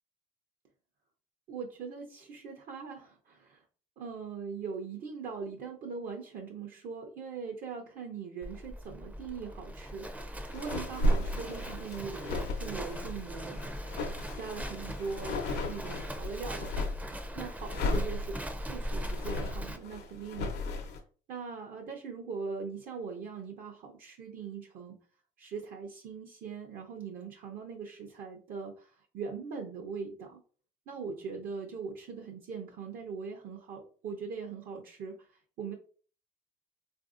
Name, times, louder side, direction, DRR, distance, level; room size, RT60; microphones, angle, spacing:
voice 1, 1.5-3.6 4.0-10.1 10.5-13.6 14.3-15.4 15.7-16.9 17.3-20.6 21.3-25.0 25.4-30.4 30.9-35.7, right 5 dB, 60° right, 2 dB, 0.6 m, -41 dB
Livestock farm animals working animals, 8.4-19.8, equal, 10° right, 0.4 m, -40 dB
sound 1, 10.5-17.1 17.6-21.0, left 1 dB, 85° left, 0.7 m, -34 dB
3.4 x 2.5 x 2.5 m, 0.40 s
cardioid pair, 110°, 17 cm